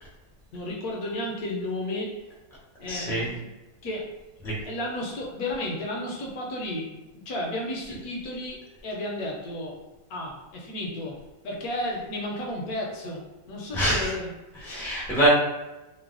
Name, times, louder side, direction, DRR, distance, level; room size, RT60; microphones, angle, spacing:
voice 1, 0.5-2.2 2.8-3.5 3.8-4.2 4.6-9.7 10.1-11.2 11.4-14.3, left 1 dB, 70° left, -1 dB, 1.0 m, -33 dB
voice 2, 2.9-3.3 4.4-4.5 13.7-14.1 14.6-15.3, right 1 dB, 5° left, -6 dB, 0.3 m, -25 dB
3.1 x 2.1 x 3.6 m, 1.1 s
omnidirectional pair, 1.9 m